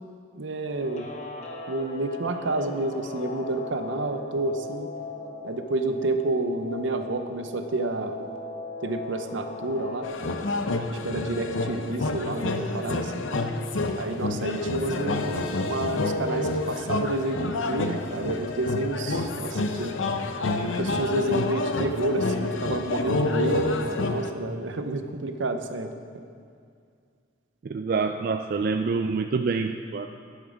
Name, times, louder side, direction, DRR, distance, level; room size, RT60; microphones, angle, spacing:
voice 1, 0.4-1.1 1.7-4.9 5.4-8.2 8.8-10.1 11.0-13.2 14.0-20.0 20.6-25.9, right 2 dB, 75° right, 7 dB, 0.7 m, -29 dB
Guitar, 0.7-10.1, left 2 dB, 35° left, 0.9 m, -39 dB
sound 1, 10.0-24.3, left 2 dB, 90° left, 0.7 m, -28 dB
voice 2, 27.6-30.1, right 4 dB, 50° right, 6 dB, 0.3 m, -26 dB
12.0 x 7.3 x 5.1 m, 2.3 s
head